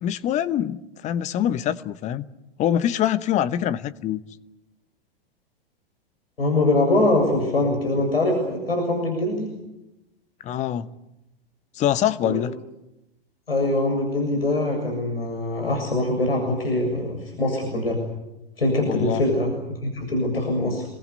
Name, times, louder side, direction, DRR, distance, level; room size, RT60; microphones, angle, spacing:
voice 1, 0.0-2.2 2.6-4.2 10.4-10.9 11.8-12.5 18.9-19.2, left 11 dB, 25° left, 1.0 m, -24 dB
voice 2, 6.4-9.5 12.2-12.4 13.5-18.0 18.6-19.5 19.8-20.9, left 2 dB, 75° left, 7.2 m, -23 dB
28.5 x 21.5 x 8.3 m
figure-of-eight pair, 100°, 30 cm